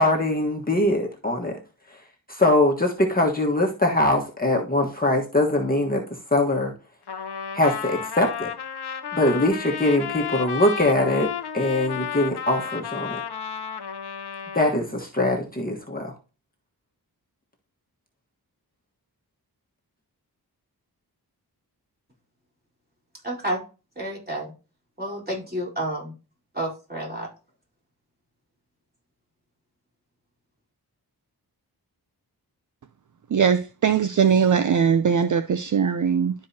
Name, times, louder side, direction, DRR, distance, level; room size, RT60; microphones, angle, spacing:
voice 1, 0.0-1.5 2.3-6.0 6.3-6.7 7.5-8.5 9.1-11.3 11.5-13.2 14.5-16.1, left 1 dB, 20° left, 1.4 m, -22 dB
Trumpet, 7.1-14.8, left 7 dB, 80° left, 0.9 m, -32 dB
voice 2, 23.2-23.6 24.0-24.5 25.0-26.1 26.5-27.3, right 1 dB, 25° right, 3.9 m, -30 dB
voice 3, 33.3-36.3, right 7 dB, 50° right, 0.5 m, -20 dB
12.0 x 4.7 x 2.8 m
wide cardioid pair, 90°, 39 cm